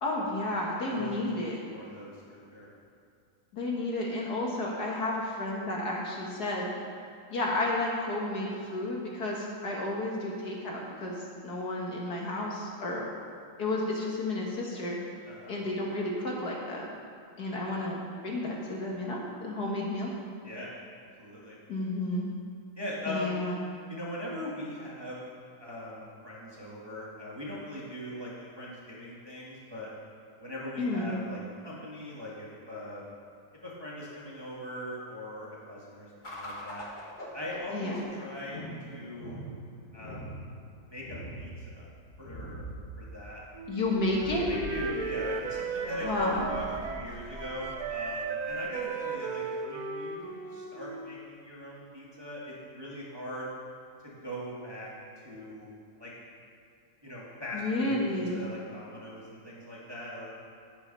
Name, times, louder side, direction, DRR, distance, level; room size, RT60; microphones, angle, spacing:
voice 1, 0.0-1.6 3.5-6.7 7.3-11.2 11.4-13.0 13.6-15.0 15.5-16.9 17.4-18.0 18.2-20.1 21.7-22.3 23.1-23.6 30.8-31.2 37.7-38.0 43.7-44.5 46.0-46.5 57.5-58.4, left 2 dB, 55° left, -2 dB, 1.8 m, -31 dB
voice 2, 0.8-2.7 15.2-15.6 20.4-20.7 21.2-21.6 22.8-23.4 23.9-25.2 25.6-29.9 30.4-33.1 33.6-36.8 37.3-38.6 38.9-39.4 39.9-40.3 40.8-41.9 42.2-42.6 43.0-43.4 44.5-53.5 54.0-54.9 55.2-55.7 56.0-56.1 57.0-60.3, left 1 dB, 15° right, -6 dB, 1.5 m, -41 dB
sound 1, 36.2-48.8, equal, 25° left, 1.4 m, -44 dB
Wind instrument woodwind instrument, 43.6-47.1 47.4-51.2, right 4 dB, 60° right, 1.1 m, -35 dB
9.9 x 8.3 x 5.4 m, 2.4 s
omnidirectional pair, 2.1 m